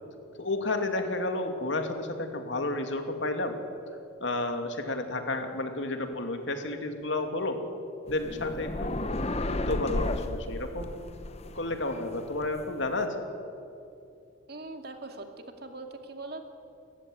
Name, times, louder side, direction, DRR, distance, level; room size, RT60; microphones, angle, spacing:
voice 1, 0.4-3.5 4.2-7.6 8.1-9.1 9.4-11.0 11.5-13.1, left 2 dB, 65° left, 5 dB, 2.6 m, -31 dB
sound 1, 8.1-13.0, left 1 dB, 30° left, 0.9 m, -34 dB
voice 2, 14.5-15.3 15.6-16.5, right 2 dB, 50° right, 5 dB, 2.3 m, -41 dB
29.5 x 15.5 x 9.4 m, 2.6 s
head